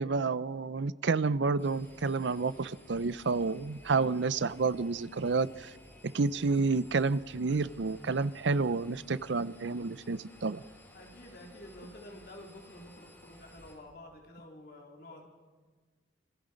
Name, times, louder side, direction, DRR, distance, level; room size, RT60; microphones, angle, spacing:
voice 1, 0.0-5.7 6.0-10.6, right 4 dB, 75° right, 17 dB, 0.6 m, -30 dB
Engine, 1.6-13.7, left 1 dB, 10° left, 6.9 m, -55 dB
voice 2, 10.9-15.2, left 1 dB, 55° left, 0 dB, 3.8 m, -50 dB
26.5 x 24.5 x 5.2 m, 1.4 s
head